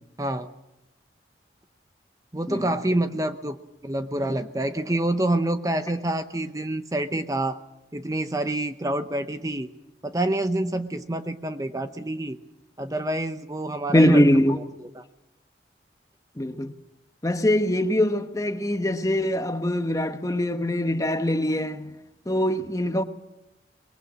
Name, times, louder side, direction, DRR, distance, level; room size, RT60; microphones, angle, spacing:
voice 1, 0.2-0.5 2.3-3.6 3.8-7.6 7.9-9.7 10.0-12.4 12.8-14.2 15.0-15.1, right 1 dB, 20° right, 0.7 m, -27 dB
voice 2, 13.9-14.6 16.4-16.7 17.2-21.9 22.3-23.0, left 1 dB, 20° left, 1.1 m, -22 dB
24.0 x 21.0 x 7.5 m
head